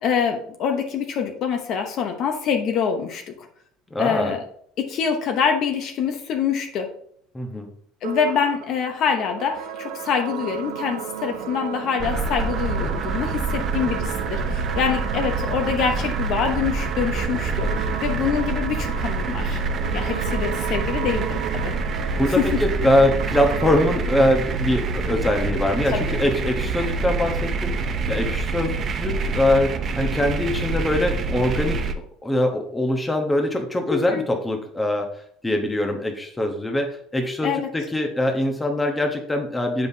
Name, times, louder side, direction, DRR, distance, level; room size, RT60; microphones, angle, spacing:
voice 1, 0.0-3.3 4.0-4.5 4.8-6.9 8.0-17.7 18.0-19.6 19.9-21.8 22.4-22.6 25.9-26.2 33.9-34.3 37.4-37.7, left 7 dB, 50° left, 4 dB, 0.9 m, -25 dB
voice 2, 3.9-4.3 7.3-7.7 20.1-20.2 22.2-31.9 32.2-35.1 35.4-39.9, left 1 dB, 10° left, 3 dB, 1.0 m, -23 dB
sound 1, 8.0-24.0, right 8 dB, 90° right, 0.6 m, -34 dB
sound 2, 12.0-31.9, right 4 dB, 35° right, 0.6 m, -26 dB
7.8 x 5.3 x 2.8 m, 0.63 s
cardioid pair, 130°, 0 cm